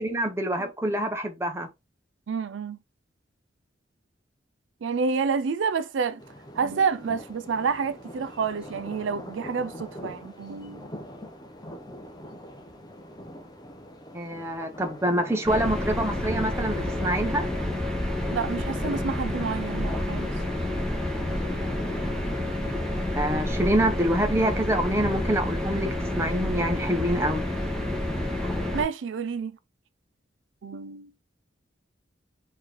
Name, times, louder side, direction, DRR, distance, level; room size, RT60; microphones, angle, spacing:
voice 1, 0.0-1.7 14.1-17.5 23.1-27.4, right 1 dB, 15° right, 1.0 m, -26 dB
voice 2, 2.3-2.8 4.8-6.2 6.5-10.8 18.3-20.3 28.7-29.6 30.6-31.1, right 5 dB, 85° right, 0.4 m, -29 dB
sound 1, 6.2-25.4, equal, 20° left, 0.8 m, -44 dB
sound 2, 15.4-28.8, left 1 dB, 5° left, 1.3 m, -29 dB
4.5 x 3.1 x 3.7 m
head